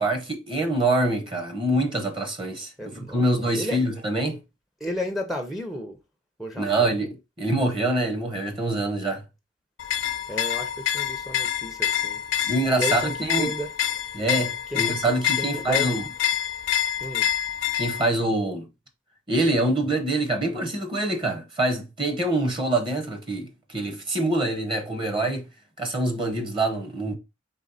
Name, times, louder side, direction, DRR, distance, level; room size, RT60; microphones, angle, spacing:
voice 1, 0.0-2.7 3.1-4.4 6.6-9.2 12.4-13.5 14.1-16.0 17.8-18.7 19.3-25.5 25.8-27.2, right 2 dB, 25° right, 0.8 m, -25 dB
voice 2, 2.8-3.3 3.6-3.8 4.8-6.0 6.4-6.9 10.3-12.2 12.8-13.7 14.7-15.0 15.4-16.0 17.0-17.3, equal, ahead, 0.5 m, -33 dB
sound 1, 9.8-18.1, left 11 dB, 70° left, 0.5 m, -27 dB
4.1 x 3.2 x 3.9 m
head